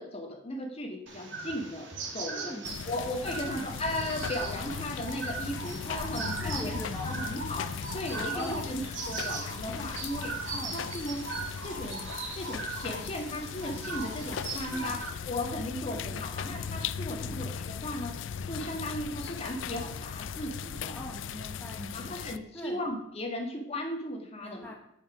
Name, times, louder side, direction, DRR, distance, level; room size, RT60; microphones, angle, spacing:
voice 1, 0.0-2.5 2.9-8.8 9.1-10.3 10.7-11.2 11.6-12.1 12.3-15.0 15.3-18.2 18.5-21.0 21.9-24.7, left 1 dB, 30° left, 3 dB, 1.6 m, -36 dB
sound 1, 1.1-15.1, right 4 dB, 75° right, 1.8 m, -39 dB
voice 2, 2.3-2.6 3.4-3.6 6.1-7.1 8.3-8.7 10.5-10.8 14.7-14.9 15.8-16.0 17.1-17.4 20.9-22.2 22.5-22.8 24.4-24.7, left 1 dB, 10° left, -2 dB, 1.2 m, -41 dB
sound 2, 2.6-22.4, left 6 dB, 80° left, 0.4 m, -38 dB
8.3 x 7.0 x 6.0 m, 0.76 s
head